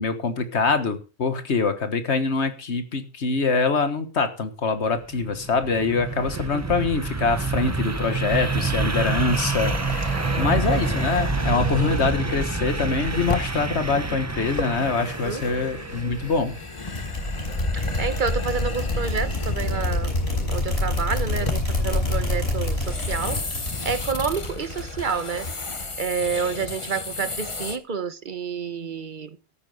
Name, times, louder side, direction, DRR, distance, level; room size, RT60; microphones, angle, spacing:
voice 1, 0.0-17.1, left 4 dB, 90° left, 10 dB, 1.7 m, -24 dB
sound 1, 5.0-16.7, right 4 dB, 20° right, 0.6 m, -28 dB
sound 2, 8.3-13.6 14.6-20.9 21.2-21.8 22.7-27.8, left 3 dB, 30° left, 1.1 m, -33 dB
voice 2, 10.1-10.7 15.2-15.4 17.7-20.1 20.5-23.4 23.8-25.5 26.0-29.4, right 5 dB, 50° right, 13 dB, 1.1 m, -29 dB
sound 3, 16.9-26.1, left 2 dB, 70° left, 4.4 m, -27 dB
13.0 x 9.3 x 4.9 m, 0.34 s
omnidirectional pair, 1.1 m